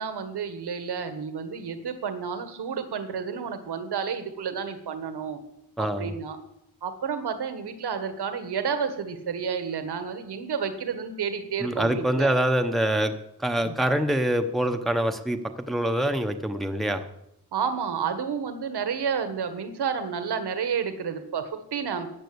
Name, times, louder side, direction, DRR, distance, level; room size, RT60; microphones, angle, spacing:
voice 1, 0.0-5.4 5.8-6.4 6.8-12.3 13.6-13.8 17.5-22.1, right 6 dB, 75° right, 9 dB, 1.7 m, -30 dB
voice 2, 5.8-6.1 11.6-13.1 13.4-17.0, right 1 dB, ahead, 6 dB, 0.8 m, -25 dB
14.0 x 9.7 x 8.1 m, 0.80 s
wide cardioid pair, 175°, 41 cm